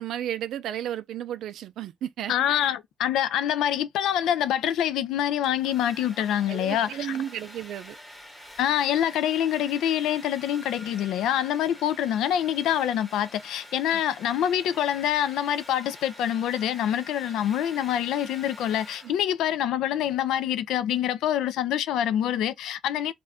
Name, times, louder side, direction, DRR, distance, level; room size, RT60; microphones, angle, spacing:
voice 1, 0.0-2.8 6.5-8.0, right 10 dB, 80° right, 0.4 m, -33 dB
voice 2, 2.3-7.1 8.6-23.1, left 10 dB, 85° left, 0.3 m, -26 dB
Domestic sounds home sounds, 5.2-19.5, equal, 10° left, 0.9 m, -47 dB
2.5 x 2.2 x 3.3 m
cardioid pair, 90°, 0 cm